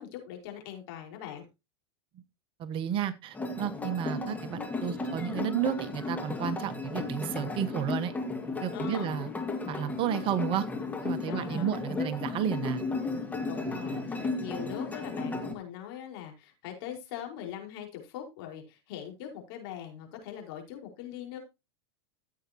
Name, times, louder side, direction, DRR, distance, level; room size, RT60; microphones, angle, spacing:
voice 1, 0.0-1.4 7.7-7.9 8.7-9.1 11.3-11.7 13.5-21.4, left 10 dB, 60° left, 2 dB, 5.0 m, -41 dB
voice 2, 2.6-8.1 8.6-9.3 9.7-10.7 11.0-12.8, right 9 dB, 40° right, 12 dB, 1.1 m, -32 dB
sound 1, 3.3-15.5, left 3 dB, 10° left, 2.3 m, -34 dB
14.5 x 8.2 x 3.0 m, 0.25 s
hypercardioid pair, 110°, 14 cm